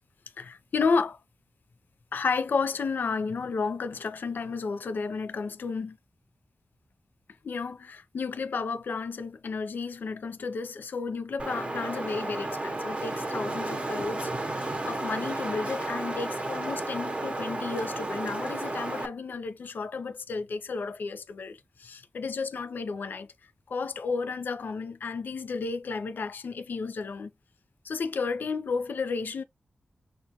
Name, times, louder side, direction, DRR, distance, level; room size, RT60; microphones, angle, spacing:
voice 1, 0.4-1.2 2.1-6.0 7.4-23.3 23.7-27.3 27.8-29.4, left 4 dB, 75° left, 0.4 m, -32 dB
Wind, 11.4-19.1, right 2 dB, 35° right, 0.7 m, -33 dB
6.3 x 2.2 x 2.8 m
wide cardioid pair, 75°, 3 cm